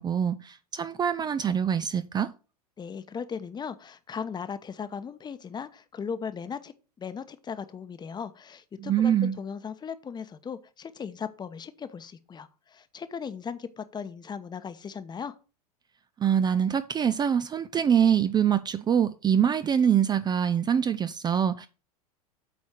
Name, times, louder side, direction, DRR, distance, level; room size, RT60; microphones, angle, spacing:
voice 1, 0.0-2.3 8.8-9.3 16.2-21.7, right 8 dB, 20° right, 0.5 m, -24 dB
voice 2, 2.8-15.3, left 6 dB, 20° left, 1.0 m, -37 dB
8.4 x 4.2 x 6.6 m
hypercardioid pair, 95°, 20 cm